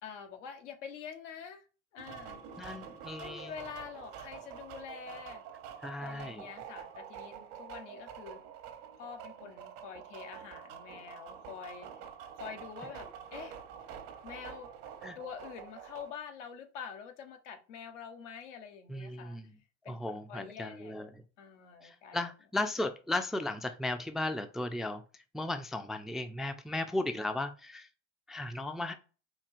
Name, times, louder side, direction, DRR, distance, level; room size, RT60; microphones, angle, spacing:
voice 1, 0.0-1.7 1.9-2.4 3.2-5.4 6.0-8.4 9.0-11.9 12.3-13.6 14.2-14.7 15.1-19.4 19.8-20.9 21.4-22.2, left 7 dB, 80° left, 0.8 m, -46 dB
sound 1, 2.0-16.1, right 8 dB, 65° right, 0.9 m, -47 dB
voice 2, 2.6-3.5 5.8-6.4 15.0-15.2 18.9-19.5 19.9-21.1 21.8-25.0 25.3-27.9 28.3-28.9, left 2 dB, ahead, 0.3 m, -36 dB
4.4 x 2.9 x 2.5 m
hypercardioid pair, 75°, 36 cm